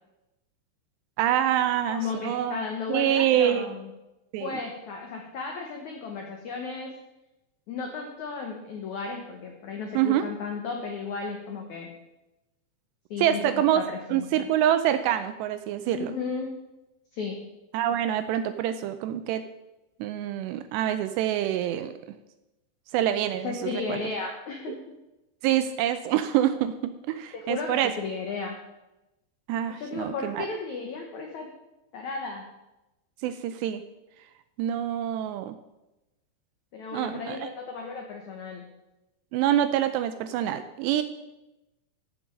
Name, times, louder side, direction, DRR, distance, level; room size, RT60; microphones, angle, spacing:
voice 1, 1.2-2.6 2.9-3.7 4.3-4.6 10.0-10.2 13.2-13.8 14.1-16.1 17.7-19.4 20.0-21.9 22.9-24.0 25.4-27.9 29.5-30.5 33.2-33.8 34.6-35.6 36.9-37.5 39.3-41.0, right 11 dB, 80° right, 11 dB, 2.6 m, -26 dB
voice 2, 1.9-3.9 4.4-7.0 7.7-11.9 13.1-14.5 15.9-16.5 17.1-17.4 23.4-24.8 27.3-28.6 29.7-31.5 31.9-32.4 36.7-38.7, left 4 dB, 80° left, 2 dB, 1.6 m, -34 dB
14.5 x 7.3 x 5.3 m, 0.96 s
omnidirectional pair, 5.3 m